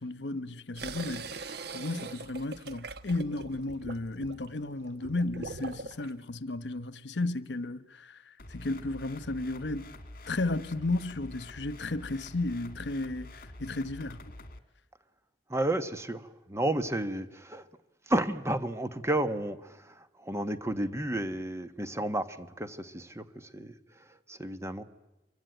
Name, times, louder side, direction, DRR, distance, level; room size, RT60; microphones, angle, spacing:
voice 1, 0.0-9.9 10.3-14.2, left 2 dB, 75° left, 1.1 m, -34 dB
sound 1, 0.8-6.1, right 3 dB, 65° right, 1.2 m, -42 dB
sound 2, 8.4-14.6, left 1 dB, 55° left, 2.1 m, -47 dB
voice 2, 15.5-17.7 18.1-24.8, right 1 dB, 15° right, 1.3 m, -32 dB
27.0 x 23.5 x 9.3 m
head